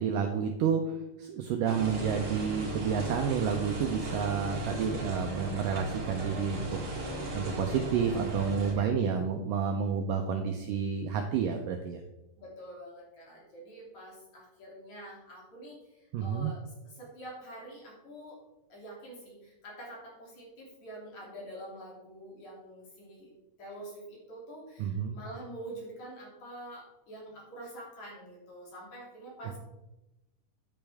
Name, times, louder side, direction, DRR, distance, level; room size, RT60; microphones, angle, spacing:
voice 1, 0.0-12.0 16.1-16.5 24.8-25.2, right 7 dB, 80° right, 4 dB, 2.0 m, -30 dB
sound 1, 1.7-8.7, right 1 dB, 40° right, 3.3 m, -37 dB
voice 2, 12.4-18.4 18.7-23.3 23.6-29.6, right 1 dB, 45° left, -4 dB, 4.0 m, -46 dB
10.0 x 8.7 x 3.5 m, 0.96 s
omnidirectional pair, 4.7 m